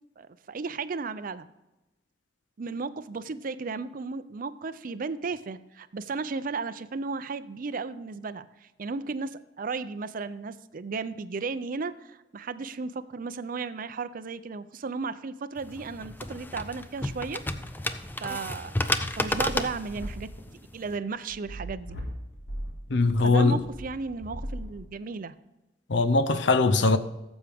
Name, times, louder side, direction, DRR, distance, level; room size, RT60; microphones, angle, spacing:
voice 1, 0.2-1.5 2.6-17.4 18.2-22.0 23.2-25.4, right 4 dB, 45° right, 0.5 m, -35 dB
sound 1, 15.6-21.0, left 1 dB, 10° left, 0.5 m, -32 dB
sound 2, 19.1-25.1, equal, 85° left, 2.0 m, -38 dB
voice 2, 22.9-23.6 25.9-27.0, left 3 dB, 70° left, 0.6 m, -21 dB
14.5 x 7.2 x 3.5 m
head